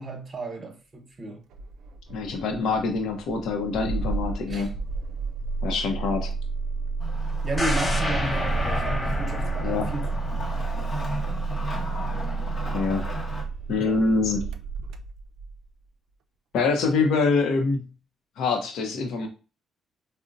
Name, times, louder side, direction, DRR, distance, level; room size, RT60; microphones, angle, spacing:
voice 1, 0.0-1.4 4.5-4.7 7.4-10.5 13.8-14.0, right 2 dB, 35° right, 0.9 m, -33 dB
Engine starting, 1.5-15.6, right 4 dB, 80° right, 0.3 m, -31 dB
voice 2, 2.1-4.8 5.6-6.3 9.6-9.9 12.7-13.1 13.7-14.6 16.5-17.9 18.4-19.3, left 4 dB, 80° left, 0.6 m, -25 dB
Wood, 7.0-13.4, left 1 dB, 55° left, 1.0 m, -37 dB
sound 1, 7.6-11.6 11.9-12.0, left 1 dB, 25° left, 0.7 m, -29 dB
3.8 x 2.0 x 2.5 m
cardioid pair, 90°, 0 cm